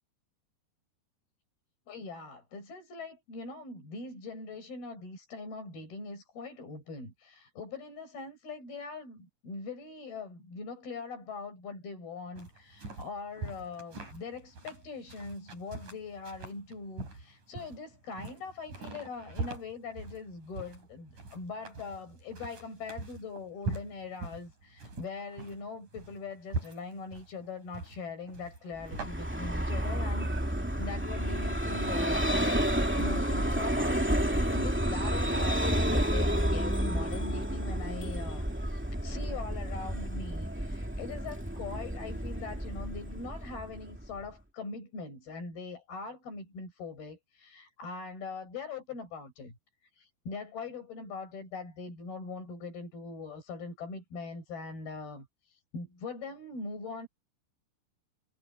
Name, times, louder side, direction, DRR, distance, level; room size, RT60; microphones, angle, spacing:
voice 1, 1.9-30.3 30.8-49.6 50.0-55.3 55.7-57.1, left 4 dB, 70° left, 9.6 m, -42 dB
sound 1, 12.4-29.1, right 3 dB, 50° right, 9.0 m, -42 dB
Vehicle, 28.8-44.3, equal, 5° right, 1.4 m, -30 dB
omnidirectional pair, 4.6 m